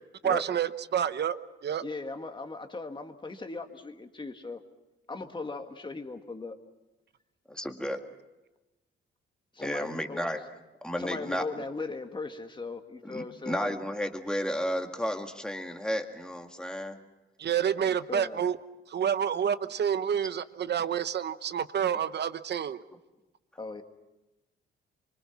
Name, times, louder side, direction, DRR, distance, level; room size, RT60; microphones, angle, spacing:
voice 1, 0.2-1.4 1.6-1.8 17.4-18.6 18.9-22.8, right 8 dB, 55° right, 13 dB, 1.0 m, -28 dB
voice 2, 1.8-4.6 5.1-6.6 9.5-10.3 11.0-13.8 17.8-18.4 23.6-23.8, left 3 dB, 20° left, 6 dB, 1.9 m, -38 dB
voice 3, 7.5-8.0 9.6-10.4 10.8-11.4 13.0-17.0, equal, 5° left, 4 dB, 2.0 m, -33 dB
25.0 x 24.5 x 6.0 m, 1.0 s
cardioid pair, 100°, 21 cm